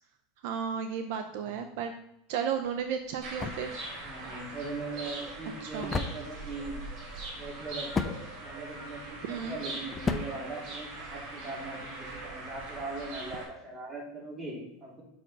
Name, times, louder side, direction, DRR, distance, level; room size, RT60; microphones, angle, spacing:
voice 1, 0.4-1.9 2.3-3.7 5.6-5.9 9.2-9.6, right 7 dB, 70° right, 7 dB, 0.6 m, -33 dB
sound 1, 2.5-11.4, left 4 dB, 20° left, 0.6 m, -38 dB
sound 2, 3.2-13.4, right 2 dB, 50° right, 2.8 m, -42 dB
voice 2, 4.0-6.8 7.3-8.2 8.4-15.0, right 3 dB, 20° right, -4 dB, 3.1 m, -40 dB
5.9 x 4.7 x 5.5 m, 0.79 s
supercardioid pair, 125°, 0 cm